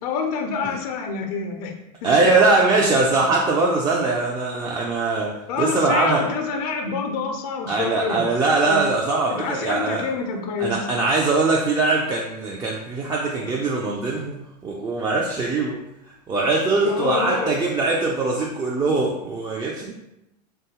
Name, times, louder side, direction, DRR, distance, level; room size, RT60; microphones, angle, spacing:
voice 1, 0.0-1.7 2.0-2.4 5.5-8.3 8.7-8.8 9.3-10.8 16.8-17.5, left 5 dB, 60° left, 4 dB, 0.5 m, -27 dB
voice 2, 2.0-6.2 7.7-10.0 10.6-14.4 14.6-15.8 16.3-19.9, right 3 dB, 20° right, -3 dB, 0.3 m, -21 dB
2.6 x 2.3 x 2.8 m, 0.86 s
hypercardioid pair, 95°, 21 cm